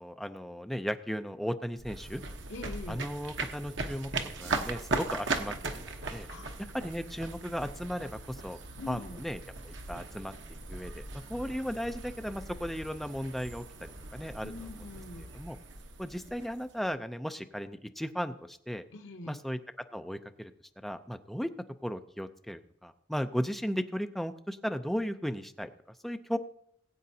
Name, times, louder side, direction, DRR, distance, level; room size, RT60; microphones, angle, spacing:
voice 1, 0.0-2.2 2.9-4.1 4.4-6.3 6.7-8.6 8.9-9.4 9.6-10.3 10.7-14.9 15.2-15.6 16.0-18.8 19.2-19.6 19.9-20.5 20.8-21.5 21.8-25.7 26.0-26.4, equal, ahead, 8 dB, 0.5 m, -36 dB
sound 1, 1.8-16.9, right 3 dB, 80° right, 1.1 m, -39 dB
voice 2, 2.5-3.0 6.3-6.6 8.8-9.2 14.4-15.2 18.9-19.4, left 3 dB, 85° left, 4 dB, 1.0 m, -43 dB
19.5 x 8.6 x 2.8 m, 0.71 s
head